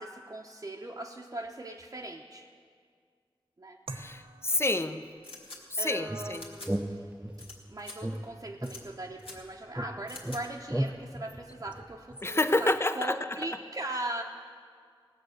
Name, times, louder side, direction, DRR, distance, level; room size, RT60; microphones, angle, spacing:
voice 1, 0.0-2.5 3.6-3.8 5.8-7.1 7.7-14.2, right 1 dB, 40° right, -1 dB, 0.8 m, -39 dB
voice 2, 3.9-5.1 5.7-6.5 12.2-13.1, left 2 dB, 25° left, 10 dB, 0.6 m, -28 dB
sound 1, 3.9-12.7, right 2 dB, 90° right, 0.8 m, -53 dB
sound 2, 5.2-5.6 6.3-6.7 7.4-7.5 7.8-8.0 8.6-8.8 9.2-9.4 10.1-10.4, left 2 dB, 80° left, 2.4 m, -45 dB
sound 3, 6.1-7.6 8.0-9.4 9.8-12.3, right 1 dB, 10° right, 0.6 m, -36 dB
18.5 x 7.9 x 6.4 m, 2.1 s
wide cardioid pair, 60°, 9 cm